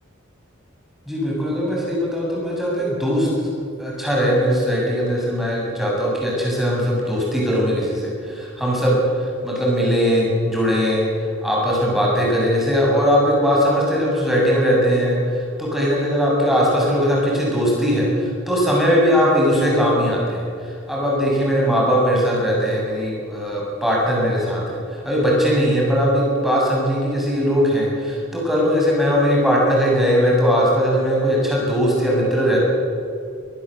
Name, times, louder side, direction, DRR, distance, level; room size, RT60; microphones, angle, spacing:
voice 1, 1.1-3.5 3.8-32.6, equal, ahead, -4 dB, 7.7 m, -20 dB
23.0 x 19.5 x 7.8 m, 2.4 s
head